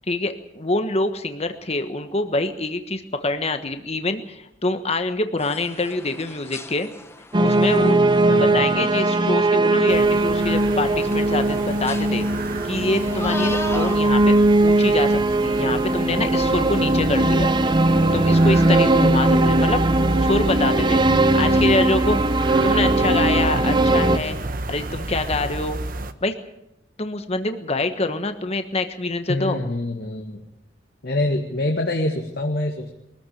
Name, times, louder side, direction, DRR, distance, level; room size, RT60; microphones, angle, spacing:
voice 1, 0.1-6.9 7.4-8.0 8.4-12.3 12.7-14.4 14.6-17.5 18.1-19.8 20.2-21.0 21.3-22.2 22.6-24.4 24.7-25.8 26.2-26.3 27.0-29.6, left 2 dB, 35° left, 8 dB, 1.3 m, -25 dB
sound 1, 5.4-14.1, left 2 dB, 15° left, 1.1 m, -38 dB
sound 2, 7.3-24.2, right 2 dB, 25° right, 0.8 m, -19 dB
voice 2, 8.3-8.6 29.3-30.4 31.0-32.9, left 1 dB, 60° left, 2 dB, 1.9 m, -25 dB
sound 3, 9.9-26.1, right 2 dB, 50° right, 1.2 m, -30 dB
23.0 x 14.5 x 9.1 m, 0.85 s
head